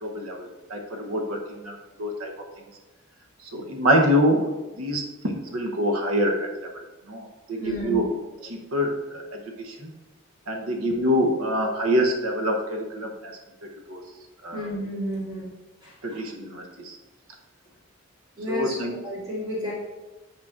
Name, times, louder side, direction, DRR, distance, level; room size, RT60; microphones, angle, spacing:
voice 1, 0.0-2.3 3.4-4.5 4.8-6.8 7.1-8.1 8.4-9.9 10.5-13.3 13.9-14.0 14.4-14.7 16.0-17.0 18.5-18.9, equal, 90° right, 2 dB, 0.8 m, -26 dB
voice 2, 7.6-8.0 14.5-15.5 15.8-16.2 18.4-19.7, equal, 20° right, -8 dB, 2.3 m, -32 dB
8.5 x 6.0 x 2.4 m, 1.1 s
head